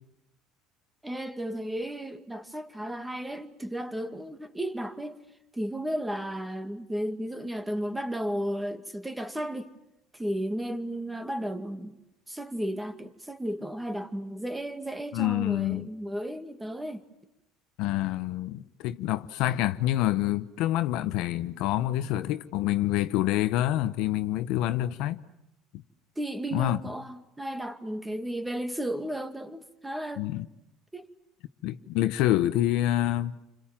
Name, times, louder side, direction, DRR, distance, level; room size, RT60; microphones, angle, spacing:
voice 1, 1.0-5.2 5.5-9.7 10.1-12.0 12.3-17.0 26.2-30.3 30.9-31.1, right 1 dB, 10° right, 2.2 m, -34 dB
voice 2, 15.1-15.9 17.8-25.2 26.5-26.8 30.2-30.4 31.6-33.3, left 14 dB, 70° left, 1.1 m, -27 dB
30.0 x 26.0 x 7.5 m
supercardioid pair, 115°, 0 cm